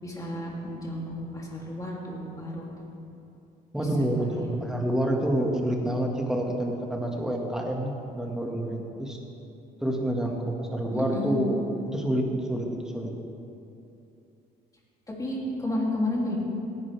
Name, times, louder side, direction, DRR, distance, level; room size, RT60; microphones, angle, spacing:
voice 1, 0.0-2.6 3.8-3.9 4.2-4.5 10.9-11.4 15.1-16.4, left 1 dB, 20° left, -3 dB, 2.8 m, -32 dB
voice 2, 3.7-9.2 9.8-13.1, right 1 dB, 5° right, 0 dB, 1.8 m, -28 dB
18.5 x 11.0 x 3.4 m, 2.8 s
cardioid pair, 110°, 17 cm